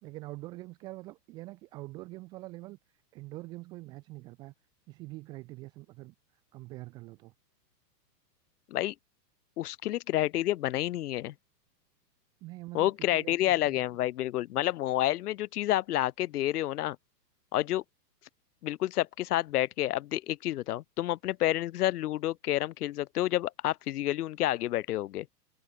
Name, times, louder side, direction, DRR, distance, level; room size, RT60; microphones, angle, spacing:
voice 1, 0.0-2.8 3.1-4.5 4.9-6.1 6.5-7.3 12.4-13.3 13.7-13.8, right 20 dB, 10° right, 0.4 m, -44 dB
voice 2, 9.6-11.3 12.7-17.0 17.5-17.8 18.6-25.3, left 14 dB, 65° left, 0.9 m, -29 dB
hypercardioid pair, 150°, 50 cm